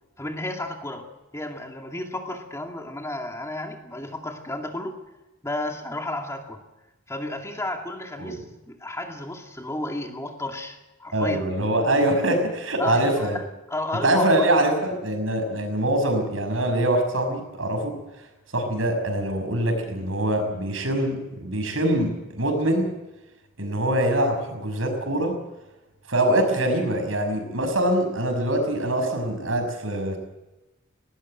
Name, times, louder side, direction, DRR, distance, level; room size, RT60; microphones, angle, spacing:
voice 1, 0.2-1.1 1.3-5.0 5.4-6.6 7.1-11.4 12.8-14.3, left 1 dB, 15° left, 3 dB, 2.3 m, -32 dB
voice 2, 11.1-13.4 14.0-18.0 18.5-23.0 23.6-25.4 26.1-30.2, right 1 dB, 80° right, 5 dB, 6.0 m, -24 dB
19.5 x 19.0 x 7.8 m, 1.0 s
head